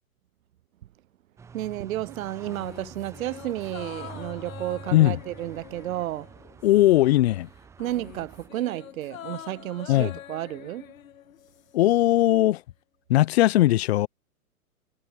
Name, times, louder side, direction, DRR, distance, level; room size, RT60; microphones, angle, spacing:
sound 1, 1.4-8.5, right 6 dB, 5° right, 0.7 m, -46 dB
voice 1, 1.5-6.3 7.8-10.9, right 14 dB, 65° right, 0.6 m, -32 dB
sound 2, 2.4-7.2 7.5-11.8 12.1-12.2, left 11 dB, 65° left, 1.7 m, -45 dB
voice 2, 6.6-7.5 9.9-10.2 11.7-12.6 13.1-14.1, left 15 dB, 45° left, 0.6 m, -19 dB
hypercardioid pair, 125°, 44 cm